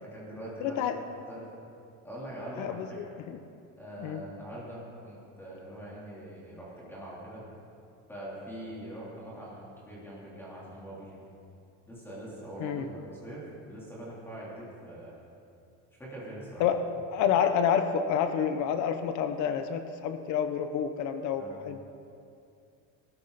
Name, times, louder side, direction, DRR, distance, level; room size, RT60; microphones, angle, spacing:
voice 1, 0.0-1.5 2.0-3.0 3.8-7.4 8.1-11.2 11.9-15.1 16.0-16.6 21.4-21.6, right 1 dB, 5° left, -7 dB, 3.2 m, -43 dB
voice 2, 0.6-1.0 2.6-3.4 4.0-4.2 12.6-12.9 16.6-16.8 17.1-21.8, left 8 dB, 55° left, 9 dB, 0.8 m, -28 dB
19.0 x 13.0 x 4.1 m, 2.6 s
cardioid pair, 170°, 35 cm